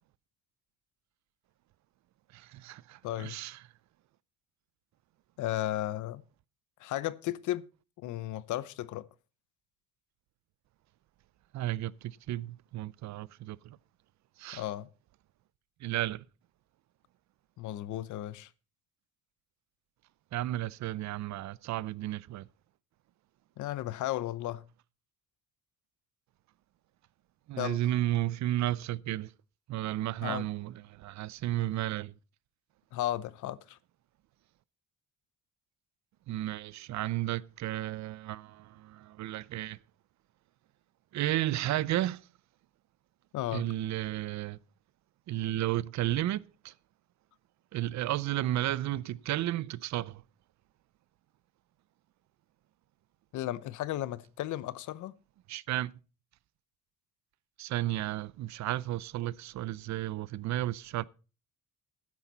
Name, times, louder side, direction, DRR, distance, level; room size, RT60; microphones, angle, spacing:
voice 1, 2.3-3.6 11.5-13.8 14.4-14.6 15.8-16.2 20.3-22.5 27.5-29.3 29.7-32.1 36.3-39.8 41.1-42.3 43.5-44.6 45.3-46.7 47.7-50.2 55.5-55.9 57.6-61.0, right 14 dB, 65° right, 0.6 m, -33 dB
voice 2, 3.0-3.4 5.4-6.2 6.8-7.6 8.0-9.1 14.5-14.9 17.6-18.5 23.6-24.6 27.6-27.8 30.2-30.5 32.9-33.8 43.3-43.7 53.3-55.1, left 14 dB, 80° left, 0.8 m, -34 dB
13.0 x 9.9 x 4.1 m
cardioid pair, 120°, 30 cm